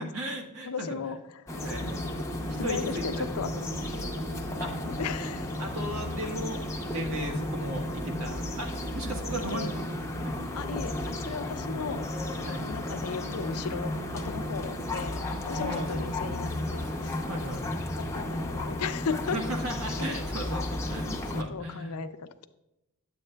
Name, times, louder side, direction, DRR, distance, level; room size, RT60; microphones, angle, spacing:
voice 1, 0.0-0.9 1.6-1.8 2.6-3.3 4.6-4.8 5.6-9.8 10.2-10.4 12.4-12.6 15.5-16.3 17.3-17.6 19.3-21.9, equal, 80° right, 1 dB, 1.4 m, -36 dB
voice 2, 0.7-2.2 2.6-4.5 4.9-5.6 9.5-9.7 10.5-12.1 12.6-19.4 21.3-22.5, left 6 dB, 90° left, 10 dB, 0.5 m, -36 dB
sound 1, 1.5-21.4, left 1 dB, 15° left, 0.6 m, -34 dB
sound 2, 1.5-17.4, right 5 dB, 50° right, 0.3 m, -44 dB
9.7 x 7.6 x 2.2 m, 0.92 s
head